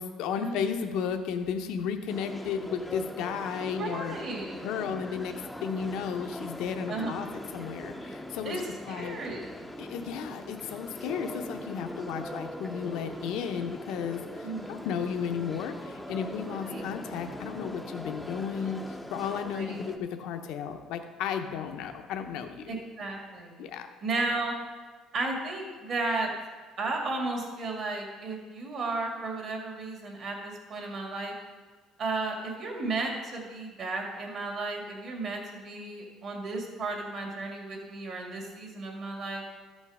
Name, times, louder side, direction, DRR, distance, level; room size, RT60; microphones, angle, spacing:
voice 1, 0.0-4.2 4.6-5.3 5.6-7.3 7.5-8.5 8.8-9.2 9.8-22.7 23.6-23.9, left 7 dB, 75° left, 6 dB, 0.8 m, -34 dB
sound 1, 2.1-20.0, left 1 dB, 5° left, 0.6 m, -41 dB
voice 2, 3.5-4.7 6.9-7.1 8.4-8.6 8.9-9.7 14.4-14.9 16.4-16.8 19.5-19.8 22.7-23.7 24.0-24.5 25.1-26.3 26.8-31.3 32.0-39.4, right 3 dB, 45° right, 1 dB, 2.1 m, -34 dB
13.0 x 5.4 x 4.9 m, 1.4 s
cardioid pair, 135°, 0 cm